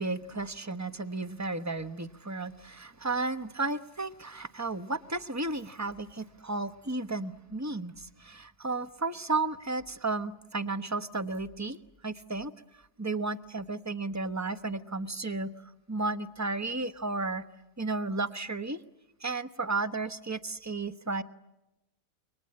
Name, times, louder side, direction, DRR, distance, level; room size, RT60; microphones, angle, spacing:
voice 1, 0.0-11.8 12.0-12.5 13.0-15.5 15.9-17.4 17.8-18.8 19.2-21.2, right 3 dB, 15° right, 11 dB, 0.8 m, -33 dB
29.0 x 23.5 x 8.7 m, 0.93 s
omnidirectional pair, 1.8 m